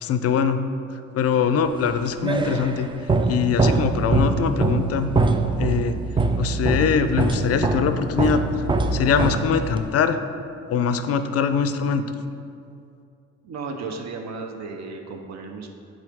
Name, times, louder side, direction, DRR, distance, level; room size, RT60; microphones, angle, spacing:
voice 1, 0.0-0.6 1.1-2.9 3.3-5.1 5.6-6.0 6.4-8.6 8.9-10.2 10.7-12.0, left 6 dB, 55° left, 10 dB, 0.4 m, -22 dB
sound 1, 1.8-9.9, right 3 dB, 15° right, 0.3 m, -23 dB
voice 2, 13.4-15.8, right 4 dB, 60° right, 3 dB, 0.7 m, -34 dB
8.0 x 3.9 x 3.5 m, 2.5 s
cardioid pair, 90°, 30 cm